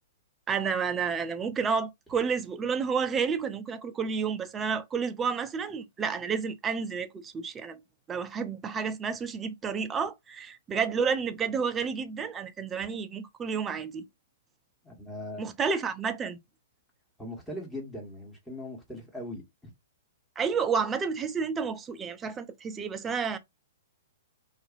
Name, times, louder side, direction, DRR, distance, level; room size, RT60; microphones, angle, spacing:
voice 1, 0.5-7.8 8.1-14.0 15.4-16.4 20.4-23.4, right 6 dB, 20° right, 0.4 m, -30 dB
voice 2, 14.8-15.4 17.2-19.7, left 1 dB, 5° left, 1.2 m, -40 dB
2.6 x 2.5 x 2.5 m
hypercardioid pair, 115°, 0 cm